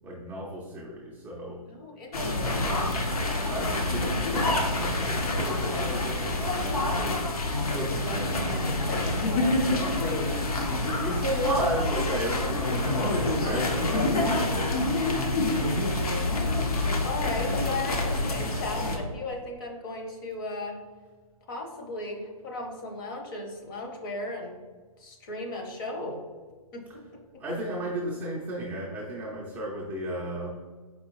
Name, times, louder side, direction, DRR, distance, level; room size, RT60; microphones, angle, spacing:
voice 1, 0.0-1.6 3.5-7.3 7.7-9.1 11.0-15.0 27.4-30.5, right 1 dB, 10° right, -7 dB, 0.4 m, -34 dB
voice 2, 1.7-2.9 6.5-7.1 8.1-10.3 13.0-13.1 14.0-14.3 15.1-20.8 21.5-24.6 25.0-26.2 26.7-26.8, left 2 dB, 35° left, 2 dB, 0.7 m, -37 dB
sound 1, 2.1-19.0, left 2 dB, 75° left, 1.0 m, -27 dB
4.3 x 4.0 x 2.9 m, 1.4 s
hypercardioid pair, 150°, 19 cm